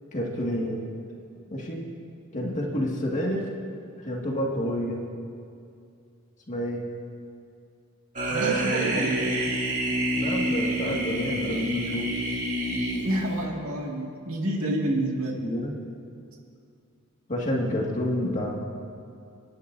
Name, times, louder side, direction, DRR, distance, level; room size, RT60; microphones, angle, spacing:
voice 1, 0.1-0.8 1.5-1.8 2.3-3.4 4.0-5.0 6.5-6.8 10.2-12.1 15.4-15.7 17.3-18.6, equal, 35° left, -2 dB, 2.0 m, -29 dB
sound 1, 8.2-13.4, right 1 dB, 40° right, 2.5 m, -27 dB
voice 2, 8.3-9.3 13.0-15.4, right 1 dB, 75° right, -1 dB, 2.1 m, -28 dB
29.5 x 11.0 x 2.7 m, 2.4 s
head